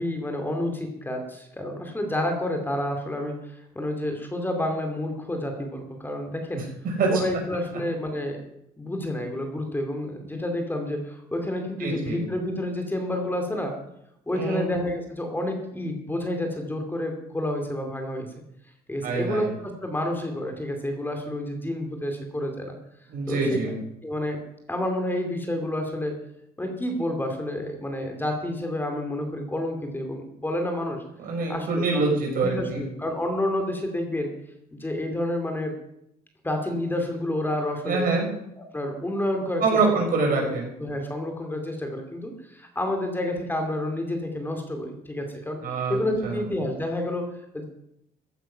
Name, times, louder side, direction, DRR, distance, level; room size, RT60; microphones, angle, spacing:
voice 1, 0.0-6.6 7.1-8.4 8.8-13.8 14.3-18.3 18.9-22.8 23.3-23.6 24.0-24.4 24.7-26.2 26.6-31.0 31.5-32.0 32.4-34.3 34.7-35.7 36.4-38.1 38.6-39.6 40.3-40.5 40.8-45.6 45.9-47.3 47.5-47.6, left 1 dB, 10° left, 4 dB, 2.6 m, -29 dB
voice 2, 6.5-7.2 11.8-12.2 14.3-14.7 19.0-19.5 23.1-23.7 31.2-32.8 37.9-38.3 39.6-40.7 45.6-46.4, right 3 dB, 55° right, 0 dB, 5.9 m, -25 dB
15.0 x 10.0 x 5.7 m, 0.78 s
cardioid pair, 110°, 17 cm